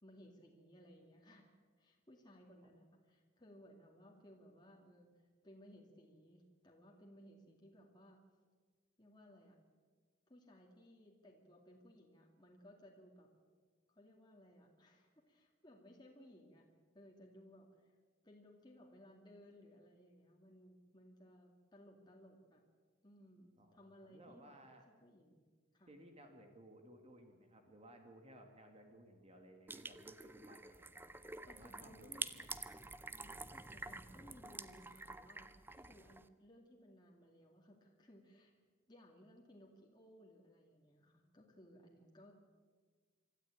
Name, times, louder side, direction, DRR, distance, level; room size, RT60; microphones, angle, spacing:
voice 1, 0.0-1.5 1.8-5.1 5.4-8.2 9.0-9.6 10.3-13.3 13.9-16.7 16.9-18.0 18.2-22.6 23.0-24.5 24.9-25.5 25.7-25.9 31.5-32.3 33.2-38.5 38.9-42.3, equal, 20° left, -1 dB, 2.3 m, -61 dB
voice 2, 23.6-24.9 25.9-31.1 31.5-32.1, right 1 dB, 30° right, 4 dB, 1.9 m, -60 dB
sound 1, 29.7-36.3, right 3 dB, 10° right, 0.6 m, -49 dB
24.5 x 13.5 x 8.7 m, 1.5 s
head